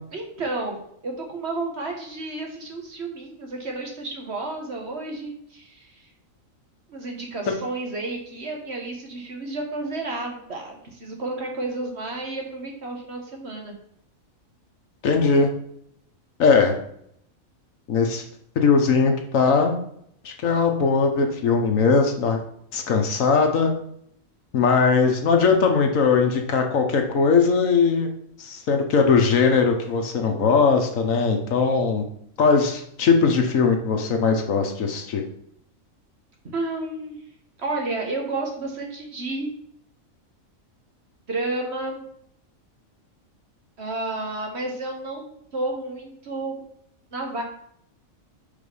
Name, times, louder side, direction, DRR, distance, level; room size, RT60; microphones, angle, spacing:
voice 1, 0.1-5.9 6.9-13.8 36.5-37.2 37.6-39.5 41.3-42.0 43.8-46.6 47.1-47.4, right 2 dB, 50° right, 1 dB, 1.5 m, -31 dB
voice 2, 15.0-15.5 16.4-16.8 17.9-18.2 18.6-19.7 20.2-22.4 22.7-23.7 24.5-28.1 28.4-32.0 32.4-35.2, left 5 dB, 75° left, 4 dB, 1.4 m, -20 dB
5.0 x 5.0 x 5.4 m, 0.70 s
omnidirectional pair, 1.4 m